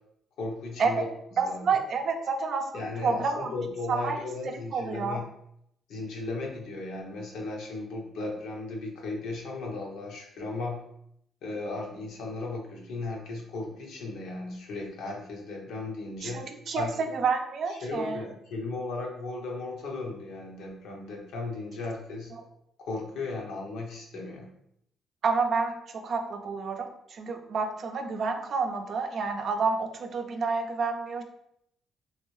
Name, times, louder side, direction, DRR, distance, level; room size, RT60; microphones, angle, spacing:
voice 1, 0.4-1.1 1.3-1.8 2.7-5.3 5.9-10.8 11.4-16.9 17.7-22.3 22.8-24.5, left 3 dB, 85° left, 0 dB, 0.8 m, -36 dB
voice 2, 1.4-3.5 3.9-4.2 4.7-5.2 16.2-18.2 25.2-31.2, right 4 dB, 60° right, 6 dB, 0.5 m, -29 dB
3.1 x 2.6 x 3.1 m, 0.75 s
cardioid pair, 90°, 0 cm